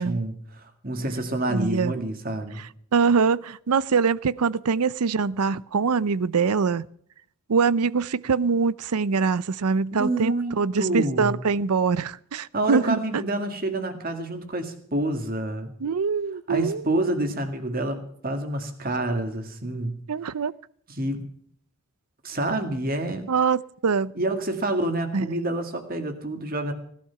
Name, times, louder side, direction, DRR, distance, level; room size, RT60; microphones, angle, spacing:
voice 1, 0.0-2.6 9.9-11.4 12.5-15.7 16.5-20.0 21.0-21.2 22.2-23.2 24.2-26.7, right 1 dB, 40° right, 2.0 m, -28 dB
voice 2, 1.5-1.9 2.9-6.9 7.5-13.2 15.8-16.8 20.1-20.5 23.3-24.1 25.1-25.3, right 5 dB, 90° right, 0.5 m, -23 dB
17.5 x 12.0 x 5.8 m
head